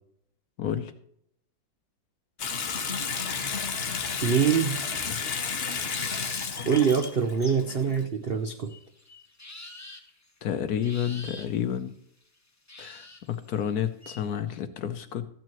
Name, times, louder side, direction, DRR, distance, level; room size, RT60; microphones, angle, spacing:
voice 1, 0.6-0.9 10.4-11.9 12.8-15.3, left 9 dB, 65° left, 9 dB, 1.0 m, -30 dB
Water tap faucet / Sink (filling or washing) / Bathtub (filling or washing), 2.4-8.1, left 5 dB, 45° left, 0.8 m, -32 dB
sound 1, 4.0-4.7 5.2-8.0 8.3-10.5 10.8-11.6 12.7-14.3, left 2 dB, 20° left, 0.4 m, -45 dB
voice 2, 4.2-4.8 6.6-8.7, right 7 dB, 85° right, 6 dB, 0.5 m, -24 dB
13.5 x 9.0 x 3.0 m, 0.70 s
omnidirectional pair, 2.1 m